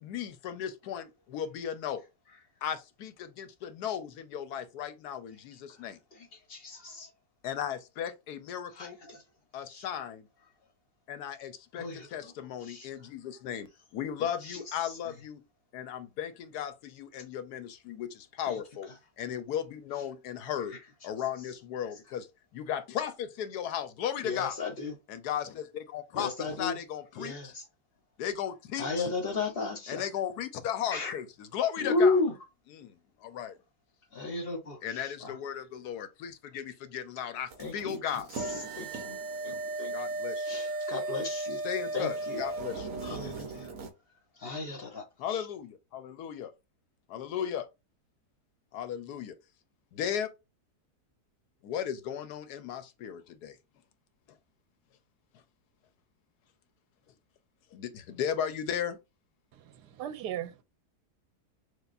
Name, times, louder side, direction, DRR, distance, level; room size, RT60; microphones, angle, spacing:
voice 1, 0.0-2.0 2.6-6.0 7.4-9.0 9.5-10.3 11.1-15.4 15.7-18.9 19.2-20.7 21.0-22.3 22.5-24.5 25.1-26.3 26.6-27.5 28.2-29.1 29.9-32.2 32.7-32.9 33.2-33.6 34.8-38.7 39.9-40.5 41.6-42.9 45.2-46.5 47.1-47.7 48.7-49.4 49.9-50.3 51.6-53.6 57.7-59.0, left 9 dB, 75° left, 1.1 m, -36 dB
voice 2, 5.7-7.1 8.7-9.2 9.7-9.9 11.8-12.3 12.6-12.9 14.2-15.1 18.5-18.6 20.7-20.8 24.2-24.9 26.1-26.8 27.2-27.7 28.8-30.1 30.9-31.2 31.8-32.3 34.1-35.4 37.6-39.9 40.4-41.6 41.9-42.4 43.0-43.7 44.4-45.5, left 3 dB, 45° left, 0.9 m, -34 dB
sound 1, 37.5-43.9, right 2 dB, 55° right, 1.2 m, -36 dB
voice 3, 59.5-60.6, right 10 dB, 80° right, 1.2 m, -38 dB
6.4 x 2.5 x 2.4 m
omnidirectional pair, 1.8 m